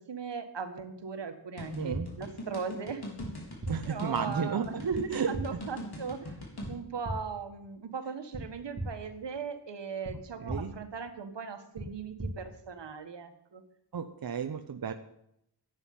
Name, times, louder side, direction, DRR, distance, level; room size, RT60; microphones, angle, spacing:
voice 1, 0.1-3.0 3.7-6.3 6.7-13.6, right 5 dB, 80° right, 8 dB, 1.7 m, -38 dB
sound 1, 1.6-6.7, left 1 dB, 65° left, 3.9 m, -41 dB
voice 2, 1.7-2.1 3.7-4.9 5.1-5.3 10.4-10.7 13.9-14.9, right 6 dB, 55° right, 7 dB, 0.8 m, -33 dB
sound 2, 1.9-2.0 3.2-3.3 3.6-3.7 4.9-5.0 5.3-5.4 6.6-6.7 7.0-7.1 8.3-8.4 8.7-8.9 10.0-10.1 10.5-10.6 11.7-11.9 12.2-12.3, right 2 dB, 35° right, 3.2 m, -36 dB
11.5 x 9.0 x 8.8 m, 0.78 s
wide cardioid pair, 120°, 42 cm